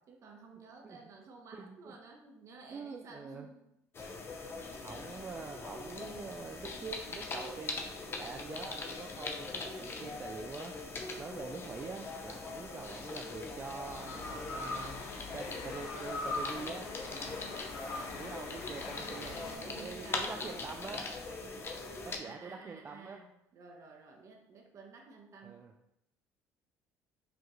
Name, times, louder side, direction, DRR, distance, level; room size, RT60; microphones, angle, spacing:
voice 1, 0.1-3.6 4.4-4.5 17.4-17.8 19.1-21.0 22.2-23.3 23.5-25.6, right 4 dB, 50° right, 2 dB, 0.8 m, -53 dB
voice 2, 1.5-2.0 2.7-3.5 4.8-10.7 11.2-15.0 15.3-16.9 18.2-21.0 22.0-23.2 25.4-25.7, right 4 dB, 30° right, 3 dB, 0.3 m, -45 dB
sound 1, 3.9-22.2, left 3 dB, 35° left, 0.6 m, -42 dB
sound 2, 8.7-10.2 12.0-19.6, left 3 dB, 75° left, 0.8 m, -43 dB
5.0 x 2.4 x 3.0 m, 0.83 s
supercardioid pair, 90°, 7 cm